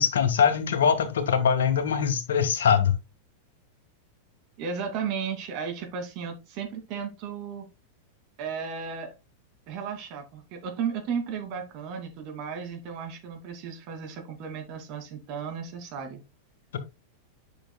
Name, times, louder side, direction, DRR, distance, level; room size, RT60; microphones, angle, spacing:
voice 1, 0.0-2.9, left 7 dB, 75° left, 1.5 m, -22 dB
voice 2, 4.6-7.7 8.4-9.1 9.7-16.2, right 6 dB, 50° right, 2.5 m, -34 dB
8.8 x 6.1 x 2.3 m
hypercardioid pair, 100°, 0 cm